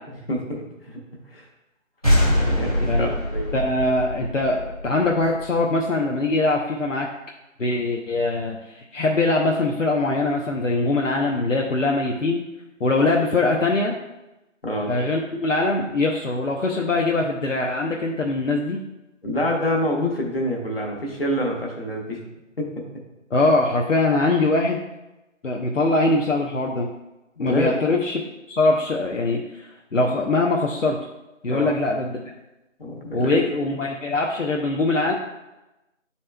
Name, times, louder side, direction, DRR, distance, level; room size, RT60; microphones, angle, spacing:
voice 1, 0.3-1.0 1.3-1.5 2.4-3.5 14.6-15.0 19.2-22.2 22.6-22.7 27.4-27.8 31.4-31.7 32.8-33.8, left 1 dB, 45° left, -1 dB, 1.4 m, -27 dB
sound 1, 2.0-5.5, left 1 dB, 30° left, 0.9 m, -23 dB
voice 2, 3.5-7.1 7.6-12.4 12.8-14.0 14.9-18.8 23.3-24.8 25.4-26.9 27.4-28.2 28.5-31.0 31.4-32.2 33.1-35.1, left 2 dB, 70° left, 0 dB, 0.9 m, -22 dB
10.5 x 4.2 x 2.2 m, 0.97 s
figure-of-eight pair, 175°, 39 cm